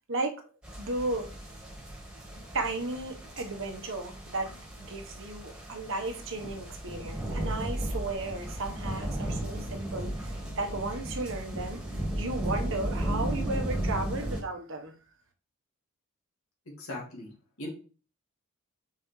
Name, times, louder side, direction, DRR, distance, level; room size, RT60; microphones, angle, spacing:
voice 1, 0.1-0.4 0.8-1.3 2.5-11.8 12.2-14.9, right 2 dB, 65° right, 4 dB, 1.2 m, -34 dB
sound 1, 0.6-14.4, right 1 dB, 5° right, 1.8 m, -35 dB
voice 2, 16.7-17.7, left 1 dB, 80° left, -1 dB, 2.2 m, -40 dB
5.8 x 5.2 x 3.2 m, 0.37 s
head